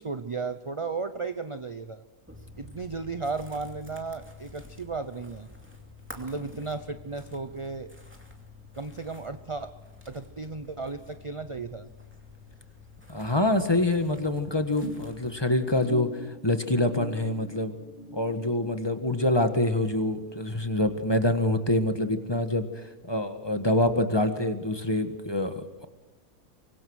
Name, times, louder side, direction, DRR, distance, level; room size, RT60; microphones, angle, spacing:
voice 1, 0.0-2.0 2.6-5.5 6.2-7.9 8.8-9.7 10.1-11.9, right 4 dB, 35° right, 10 dB, 0.5 m, -35 dB
sound 1, 2.3-15.5, left 3 dB, 5° right, 2.6 m, -49 dB
voice 2, 13.1-17.7 18.1-25.8, left 1 dB, 15° left, 7 dB, 1.5 m, -26 dB
sound 2, 14.8-21.4 21.7-22.1 22.4-22.5, left 1 dB, 50° left, 4.6 m, -44 dB
24.5 x 21.5 x 6.4 m, 1.1 s
omnidirectional pair, 1.6 m